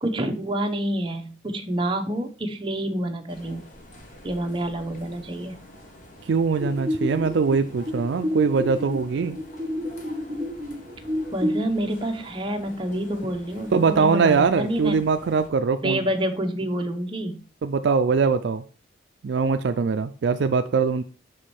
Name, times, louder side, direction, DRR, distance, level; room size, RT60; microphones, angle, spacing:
voice 1, 0.0-3.6 4.2-5.5 11.3-15.0 15.8-17.4, right 1 dB, 25° right, 4 dB, 0.8 m, -28 dB
sound 1, 3.3-15.5, equal, 40° left, 1.2 m, -47 dB
voice 2, 6.2-9.4 13.7-16.0 17.6-18.6 19.2-21.0, right 5 dB, 60° right, 9 dB, 0.4 m, -22 dB
sound 2, 6.6-11.6, equal, 10° right, 1.4 m, -30 dB
6.2 x 4.9 x 4.3 m, 0.37 s
head